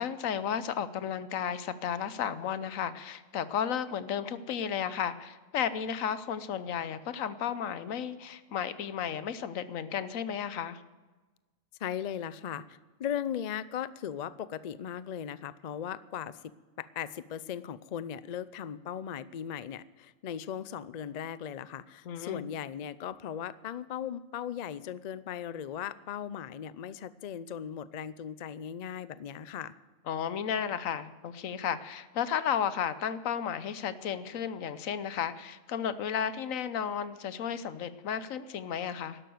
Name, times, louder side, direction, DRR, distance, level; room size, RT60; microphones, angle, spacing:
voice 1, 0.0-10.8 22.1-22.4 30.1-39.2, left 8 dB, 80° left, 14 dB, 1.2 m, -33 dB
voice 2, 11.8-16.4 16.8-29.7, left 9 dB, 65° left, 16 dB, 0.4 m, -38 dB
12.5 x 11.5 x 7.8 m, 1.3 s
omnidirectional pair, 1.4 m